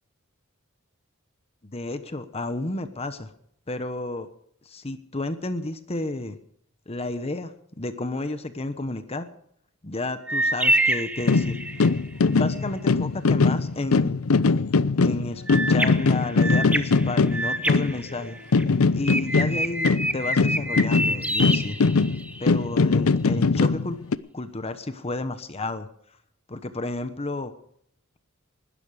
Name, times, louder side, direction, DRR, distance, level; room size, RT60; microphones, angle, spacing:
voice 1, 1.7-3.3 3.7-4.3 4.6-6.4 6.9-7.5 7.8-9.3 9.8-11.6 12.3-14.3 15.0-18.4 18.9-21.8 22.4-24.0 24.3-25.9 26.5-27.5, left 2 dB, 30° left, 10 dB, 1.1 m, -31 dB
sound 1, 10.3-12.0 15.5-18.6 19.0-22.5, right 1 dB, 5° right, 1.0 m, -27 dB
sound 2, 11.2-18.3 18.5-24.2, left 4 dB, 90° left, 0.6 m, -21 dB
20.0 x 12.5 x 5.0 m, 0.69 s
head